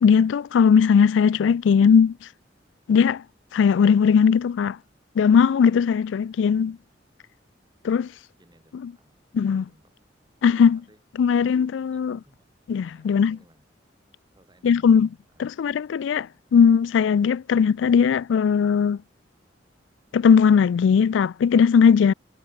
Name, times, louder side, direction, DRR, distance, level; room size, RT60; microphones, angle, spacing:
voice 1, 0.0-2.1 2.9-3.2 3.5-4.8 5.2-6.8 7.8-8.1 9.3-9.6 10.4-10.8 11.2-12.2 12.7-13.4 14.6-15.1 15.4-19.0 20.1-22.1, left 6 dB, 80° left, 0.3 m, -18 dB
voice 2, 8.4-10.0 10.6-11.0 11.9-12.5 12.8-13.7 14.4-15.0 15.3-15.5, right 1 dB, 25° right, 5.4 m, -61 dB
head